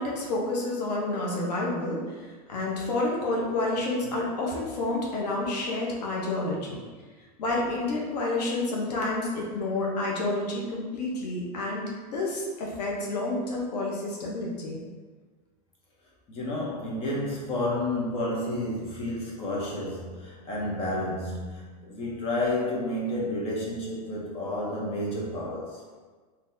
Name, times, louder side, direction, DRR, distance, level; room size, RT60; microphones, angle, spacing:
voice 1, 0.0-2.2 2.5-6.8 7.4-14.8, left 2 dB, 90° left, -2 dB, 0.9 m, -29 dB
voice 2, 16.3-25.8, left 1 dB, 30° left, -4 dB, 0.7 m, -30 dB
3.8 x 2.7 x 2.6 m, 1.4 s
supercardioid pair, 150°, 20 cm